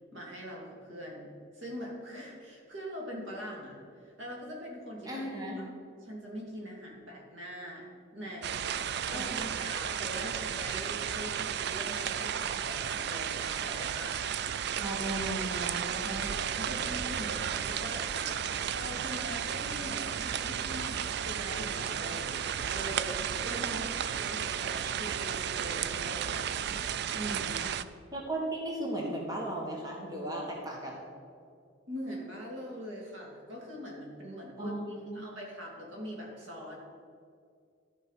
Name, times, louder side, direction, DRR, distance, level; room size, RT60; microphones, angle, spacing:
voice 1, 0.1-5.3 6.0-7.9 8.1-8.7 9.1-14.3 14.8-15.0 16.0-26.6 27.1-27.7 31.9-36.8, equal, 80° right, -2 dB, 2.7 m, -42 dB
voice 2, 5.0-5.6 9.0-9.5 14.7-16.3 23.6-23.8 28.1-31.0 34.6-35.2, right 1 dB, 20° right, -2 dB, 1.6 m, -36 dB
sound 1, 8.4-27.8, right 8 dB, 60° right, 0.4 m, -33 dB
13.5 x 5.3 x 5.7 m, 2.3 s
head